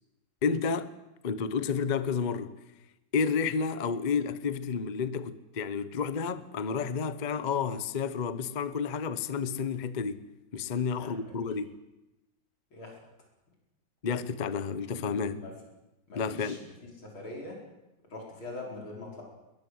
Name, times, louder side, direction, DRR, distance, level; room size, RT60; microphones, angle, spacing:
voice 1, 0.4-0.9 1.2-2.5 3.1-10.3 10.5-11.8 14.0-15.4 16.1-16.6, left 5 dB, 35° left, 0.7 m, -31 dB
voice 2, 11.0-11.3 12.7-13.0 14.8-15.5 16.1-17.6 18.1-19.2, left 2 dB, 90° left, 6.0 m, -43 dB
22.0 x 20.5 x 8.0 m
omnidirectional pair, 2.2 m